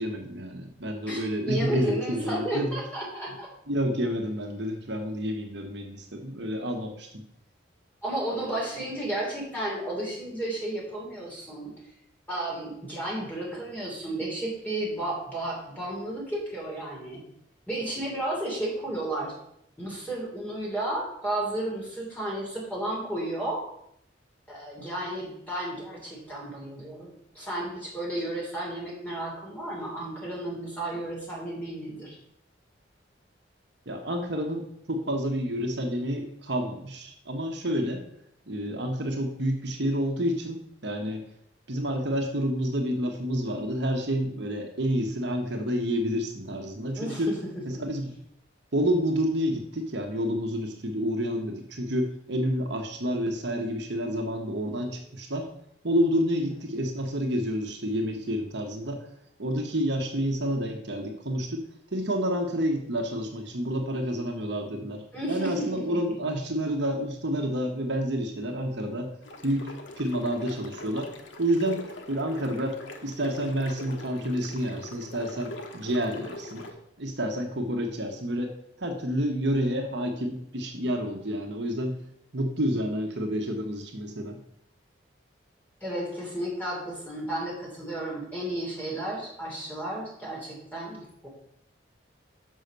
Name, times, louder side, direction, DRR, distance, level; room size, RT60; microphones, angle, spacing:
voice 1, 0.0-2.7 3.7-7.1 33.9-38.0 38.5-41.2 41.7-47.3 47.6-48.1 48.7-55.5 55.8-59.0 59.4-61.6 61.9-65.0 65.3-69.1 69.4-71.1 71.4-71.8 72.1-72.7 73.0-76.6 77.0-78.5 78.8-82.0 82.3-84.4, equal, 60° right, 3 dB, 1.0 m, -29 dB
voice 2, 1.1-3.5 8.0-11.7 12.3-17.2 17.7-19.3 19.8-23.6 24.5-32.2 46.9-47.8 56.3-56.4 65.1-66.0 85.8-91.3, right 1 dB, 10° left, -5 dB, 3.1 m, -33 dB
sound 1, 69.2-76.7, left 1 dB, 75° left, 1.2 m, -43 dB
6.4 x 5.6 x 6.7 m, 0.74 s
head